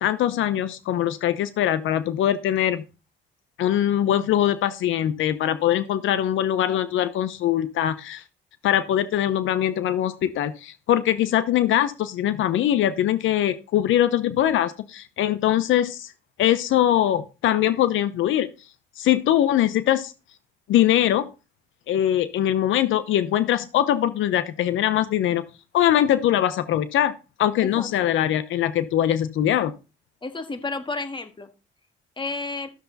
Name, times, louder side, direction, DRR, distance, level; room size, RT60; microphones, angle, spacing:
voice 1, 0.0-2.8 3.6-8.2 8.6-16.1 16.4-18.5 19.0-20.1 20.7-21.3 21.9-25.4 25.7-27.1 27.4-29.7, left 11 dB, 80° left, 0.8 m, -22 dB
voice 2, 27.8-28.1 30.2-31.5 32.2-32.7, left 3 dB, 25° left, 1.8 m, -32 dB
13.0 x 6.9 x 4.0 m
cardioid pair, 90°, 20 cm